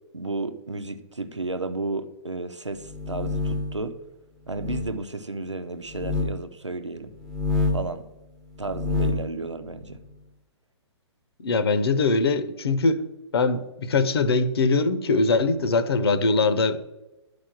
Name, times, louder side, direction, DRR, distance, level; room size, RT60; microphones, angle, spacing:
voice 1, 0.1-4.0 4.5-7.1 7.7-8.0 8.6-10.0, right 3 dB, 85° right, 1.0 m, -32 dB
sound 1, 2.8-3.8 4.5-4.9 5.9-6.3 7.2-7.9 8.6-9.3, left 3 dB, 5° left, 1.0 m, -27 dB
voice 2, 11.4-13.0 13.3-16.8, left 3 dB, 60° left, 1.1 m, -22 dB
11.5 x 5.2 x 6.1 m
figure-of-eight pair, 115°, 15 cm